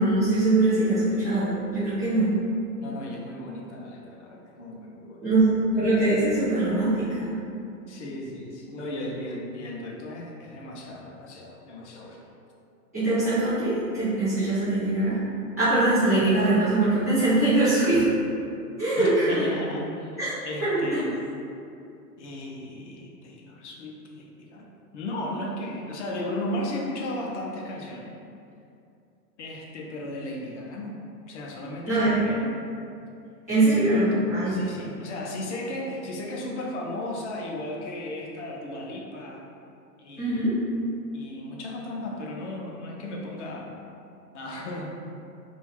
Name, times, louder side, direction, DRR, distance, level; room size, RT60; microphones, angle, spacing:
voice 1, 0.0-2.3 5.2-7.4 12.9-15.2 15.6-18.0 18.8-19.5 20.2-20.3 20.7-21.0 31.9-32.2 33.5-34.6 40.2-40.6, right 2 dB, 10° right, -16 dB, 0.3 m, -22 dB
voice 2, 2.8-5.2 7.9-12.2 19.0-20.2 20.4-21.2 22.2-28.2 29.4-31.0 31.3-32.5 33.6-39.5 40.0-40.5 41.1-43.8 44.3-44.9, left 1 dB, 45° left, -1 dB, 0.5 m, -35 dB
2.6 x 2.3 x 3.4 m, 2.5 s
hypercardioid pair, 140°, 49 cm